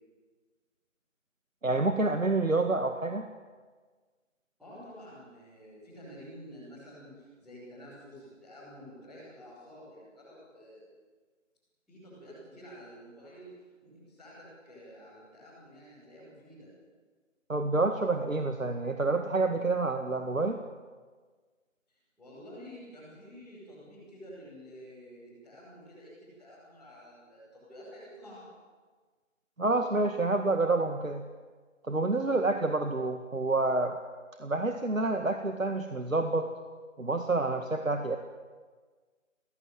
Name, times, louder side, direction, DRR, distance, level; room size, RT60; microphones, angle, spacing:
voice 1, 1.6-3.2 17.5-20.6 29.6-31.2 31.9-34.0 34.4-36.5 37.0-38.2, right 2 dB, 90° right, 6 dB, 2.0 m, -28 dB
voice 2, 4.6-10.8 11.9-13.5 13.8-16.7 21.9-28.5, equal, ahead, -17 dB, 6.2 m, -50 dB
23.0 x 18.0 x 9.2 m, 1.5 s
figure-of-eight pair, 165°, 39 cm